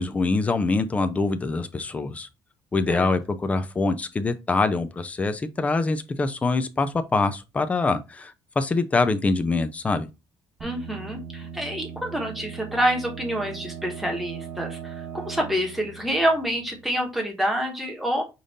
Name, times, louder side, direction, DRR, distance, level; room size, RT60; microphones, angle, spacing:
voice 1, 0.0-2.3 2.7-10.1, left 3 dB, 15° left, 0.4 m, -24 dB
voice 2, 10.6-18.2, equal, ahead, 1.0 m, -27 dB
Analog synth bass, 10.6-17.2, right 7 dB, 35° right, 0.9 m, -39 dB
5.2 x 2.5 x 4.0 m
cardioid pair, 170°, 9 cm